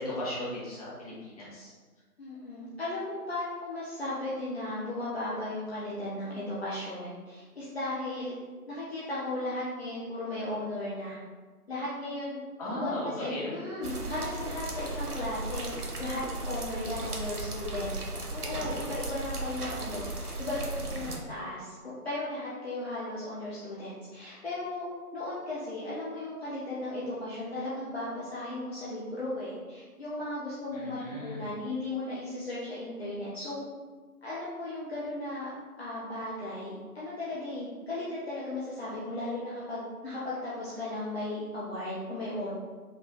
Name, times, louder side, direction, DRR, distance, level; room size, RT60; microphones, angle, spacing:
voice 1, 0.0-1.7 12.6-13.5 20.6-21.2 30.7-31.4, left 1 dB, 25° left, -8 dB, 1.3 m, -36 dB
voice 2, 2.2-8.4 8.7-11.2 11.7-12.4 12.7-15.7 16.0-17.9 18.3-20.6 20.8-24.9 25.1-33.6 34.2-35.5 35.8-42.5, left 2 dB, 40° left, -8 dB, 0.9 m, -36 dB
sound 1, 13.8-21.2, right 2 dB, 75° right, 1.0 m, -36 dB
5.1 x 3.1 x 3.1 m, 1.4 s
figure-of-eight pair, 150°, 46 cm